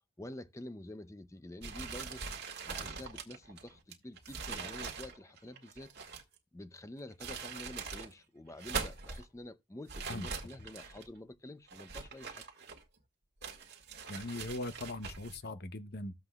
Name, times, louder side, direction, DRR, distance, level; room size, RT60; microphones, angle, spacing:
voice 1, 0.2-2.2 2.6-6.2 6.5-12.4, left 1 dB, 15° left, 0.5 m, -48 dB
sound 1, 1.6-6.4 7.0-8.1 8.5-9.2 9.9-11.1 11.7-13.0 13.4-15.4, right 5 dB, 50° right, 1.7 m, -42 dB
voice 2, 14.1-16.1, left 2 dB, 50° left, 0.8 m, -40 dB
14.0 x 7.7 x 2.3 m
head